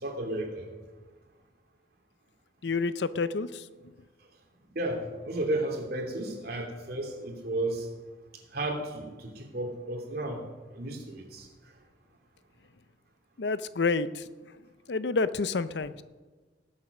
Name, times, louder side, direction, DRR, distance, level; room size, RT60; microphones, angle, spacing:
voice 1, 0.0-0.7 4.7-7.9 8.5-10.4 10.7-11.5, right 1 dB, 60° right, 2 dB, 2.8 m, -33 dB
voice 2, 2.6-3.7 13.4-14.2 14.9-16.0, left 4 dB, 70° left, 14 dB, 0.6 m, -29 dB
18.5 x 7.6 x 6.0 m, 1.3 s
head